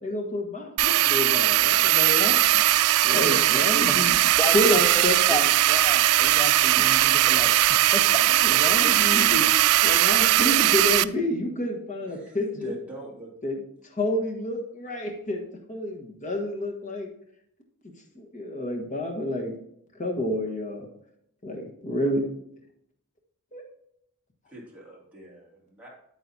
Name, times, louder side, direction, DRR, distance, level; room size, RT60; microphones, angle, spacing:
voice 1, 0.0-2.7 3.0-4.2 4.5-5.4 6.7-6.8 8.3-9.5 9.8-12.7 13.4-13.6 14.0-15.4 15.7-17.1 18.1-19.5 20.0-20.9 21.4-22.3 23.5-23.6, left 1 dB, 35° left, 1 dB, 1.4 m, -29 dB
sound 1, 0.8-11.0, right 15 dB, 75° right, 0.3 m, -20 dB
voice 2, 4.4-5.0 5.3-8.2, left 1 dB, 10° left, 6 dB, 0.8 m, -33 dB
voice 3, 12.1-13.3 24.5-25.9, right 2 dB, 5° right, -5 dB, 2.6 m, -43 dB
9.0 x 9.0 x 2.8 m, 0.73 s
head